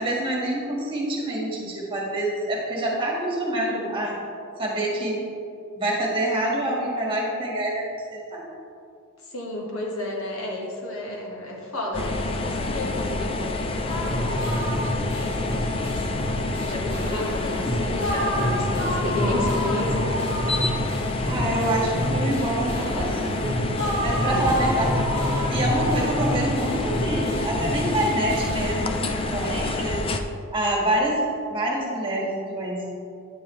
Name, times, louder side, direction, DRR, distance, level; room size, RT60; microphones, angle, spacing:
voice 1, 0.0-4.2 4.6-5.2 5.8-7.9 8.1-8.4 17.0-17.8 21.2-23.6 24.0-24.9 25.5-30.0 30.5-31.2 31.5-32.9, right 1 dB, 25° right, -4 dB, 1.6 m, -26 dB
voice 2, 9.3-16.0 16.6-20.1 24.3-24.7 29.0-29.1, left 2 dB, 80° left, -2 dB, 1.5 m, -32 dB
sound 1, 11.9-30.2, left 2 dB, 25° left, 0.4 m, -28 dB
sound 2, 13.9-29.6, equal, 55° left, 1.5 m, -29 dB
9.6 x 7.0 x 3.1 m, 2.5 s
head